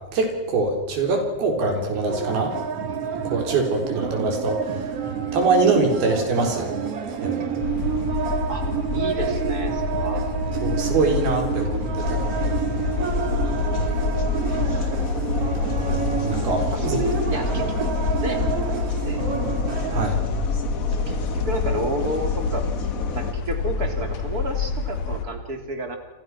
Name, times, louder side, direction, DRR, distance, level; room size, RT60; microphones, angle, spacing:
voice 1, 0.1-2.6 3.3-4.6 5.3-6.8 7.2-7.4 10.6-12.7 15.8-17.0 19.9-20.2, right 3 dB, 80° right, 4 dB, 6.0 m, -24 dB
sound 1, 2.1-20.1, right 7 dB, 45° right, 2.6 m, -29 dB
sound 2, 7.6-25.2, left 4 dB, 60° left, 3.1 m, -28 dB
voice 2, 8.9-10.2 16.7-17.9 18.2-18.4 19.0-19.2 21.1-22.7 23.1-26.0, right 1 dB, 25° right, 5 dB, 3.6 m, -30 dB
sound 3, 12.0-23.3, left 4 dB, 80° left, 0.7 m, -30 dB
29.0 x 27.0 x 6.2 m, 1.0 s
omnidirectional pair, 4.3 m